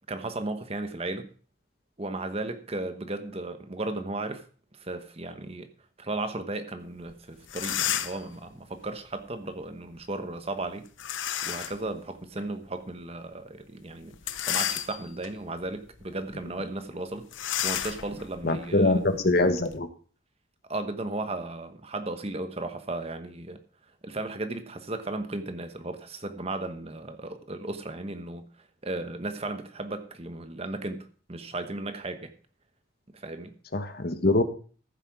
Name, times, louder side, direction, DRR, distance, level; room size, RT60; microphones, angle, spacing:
voice 1, 0.1-1.3 2.0-4.4 4.8-5.7 6.0-10.9 11.4-17.3 17.6-19.0 20.7-23.6 24.0-28.5 28.8-32.3 33.1-33.5, right 2 dB, 30° right, 1.1 m, -35 dB
sound 1, 7.1-7.2 7.4-8.3 11.0-11.8 12.4-12.5 14.1-15.3 15.8-16.0 16.3-16.4 17.3-19.8, left 11 dB, 70° left, 0.8 m, -32 dB
voice 2, 18.4-19.9 33.7-34.4, left 2 dB, 50° left, 1.2 m, -23 dB
14.5 x 7.8 x 4.8 m
head